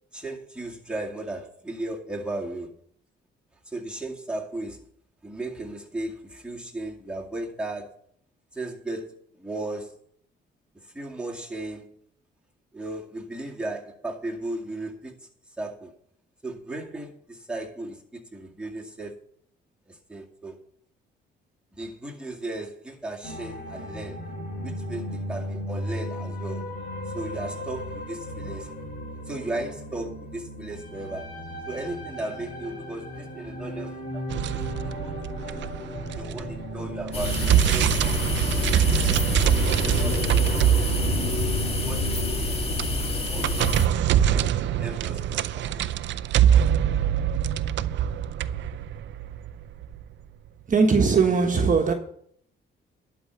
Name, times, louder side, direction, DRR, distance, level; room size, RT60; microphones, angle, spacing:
voice 1, 0.1-2.8 3.7-4.8 5.2-7.9 8.5-9.9 10.9-12.0 12.7-15.3 15.6-15.9 16.4-19.2 19.9-20.6 21.7-24.3 24.6-26.7 27.1-28.7 29.3-31.3 31.7-35.1 35.4-35.6 36.1-38.0 38.5-39.0 39.8-40.2 41.8-42.8 43.3-45.7, right 2 dB, 5° right, 2.2 m, -36 dB
sound 1, 23.2-42.3, left 1 dB, 50° left, 3.4 m, -36 dB
sound 2, 34.3-36.7 37.0-50.0, right 10 dB, 65° right, 0.5 m, -24 dB
sound 3, 37.1-43.9, left 1 dB, 30° left, 1.8 m, -27 dB
voice 2, 50.7-51.9, right 5 dB, 40° right, 1.3 m, -19 dB
11.0 x 4.7 x 7.8 m
cardioid pair, 90°, 20 cm